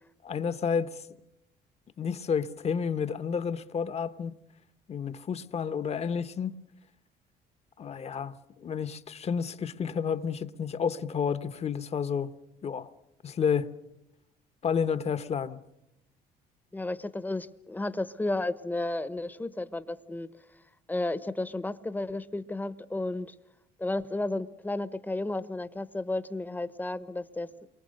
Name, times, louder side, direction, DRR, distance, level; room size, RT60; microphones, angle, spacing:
voice 1, 0.2-1.0 2.0-4.4 4.9-6.6 7.8-12.3 12.6-12.9 13.2-13.7 14.6-15.6, left 6 dB, 40° left, 1.1 m, -30 dB
voice 2, 16.7-20.3 20.9-23.3 23.8-27.7, left 2 dB, 10° left, 1.0 m, -33 dB
29.0 x 23.5 x 6.6 m
cardioid pair, 110°, 17 cm